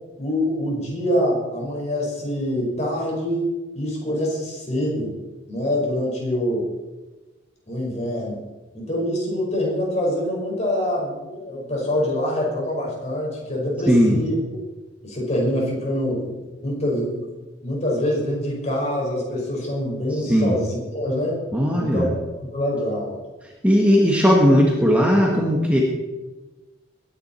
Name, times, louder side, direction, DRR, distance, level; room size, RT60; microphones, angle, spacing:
voice 1, 0.2-3.5 3.7-5.1 5.5-6.7 7.7-8.4 8.7-14.4 15.0-16.3 16.6-17.3 17.6-21.4 21.8-23.2, left 1 dB, 35° left, -2 dB, 5.3 m, -25 dB
voice 2, 13.9-14.2 20.3-20.5 21.5-22.1 23.6-25.8, equal, 5° right, -2 dB, 1.6 m, -17 dB
21.0 x 9.9 x 4.4 m, 1.2 s
head